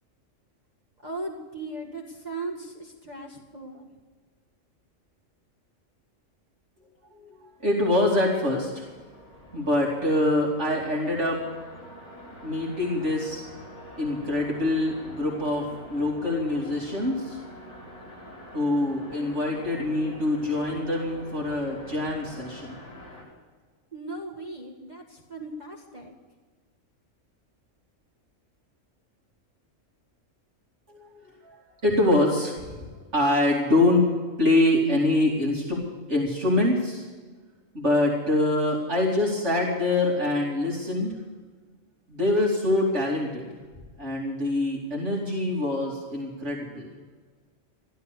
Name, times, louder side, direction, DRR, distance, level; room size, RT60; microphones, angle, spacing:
voice 1, 1.0-3.9 23.9-26.1, right 2 dB, 35° right, 0 dB, 2.0 m, -37 dB
voice 2, 7.6-8.9 9.5-11.4 12.4-13.4 14.0-17.4 18.5-22.7 30.9-31.1 31.4-32.8 33.1-34.0 34.4-37.0 37.7-41.1 42.1-43.5 44.0-46.9, left 1 dB, 60° right, -3 dB, 3.1 m, -25 dB
sound 1, 7.7-23.2, equal, 60° left, 6.5 m, -46 dB
15.0 x 12.5 x 6.6 m, 1.4 s
omnidirectional pair, 1.3 m